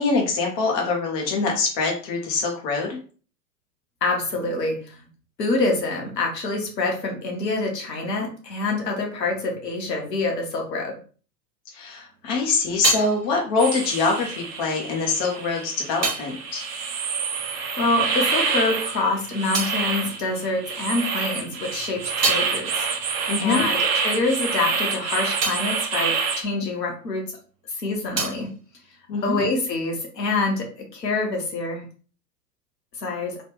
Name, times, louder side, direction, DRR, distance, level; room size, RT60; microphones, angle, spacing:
voice 1, 0.0-3.0 11.7-16.6 23.3-23.6 29.1-29.4, left 4 dB, 20° left, 0 dB, 0.3 m, -24 dB
voice 2, 4.0-5.0 5.4-10.9 17.8-22.9 23.4-27.2 27.7-28.5 29.2-30.7 30.9-31.8 33.0-33.3, left 3 dB, 80° left, 1 dB, 1.1 m, -26 dB
sound 1, 12.0-18.0 18.3-21.0 21.4-27.4 27.7-29.7, right 4 dB, 85° right, 0.8 m, -33 dB
sound 2, 13.6-26.4, right 5 dB, 40° right, 0.6 m, -27 dB
3.3 x 2.2 x 2.9 m, 0.39 s
figure-of-eight pair, 95°, 49 cm